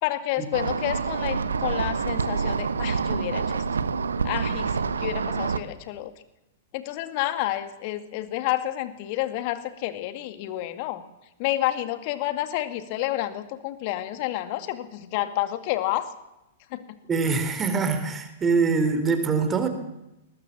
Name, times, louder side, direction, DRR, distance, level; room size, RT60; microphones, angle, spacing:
voice 1, 0.0-3.6 4.2-6.1 6.7-11.0 11.4-16.1 16.7-17.0, left 14 dB, 45° left, 11 dB, 2.1 m, -29 dB
sound 1, 0.5-5.6, right 5 dB, 75° right, 1.2 m, -27 dB
voice 2, 17.1-19.7, right 4 dB, 20° right, 9 dB, 3.6 m, -23 dB
20.5 x 20.0 x 7.3 m, 0.92 s
figure-of-eight pair, 105°, 0 cm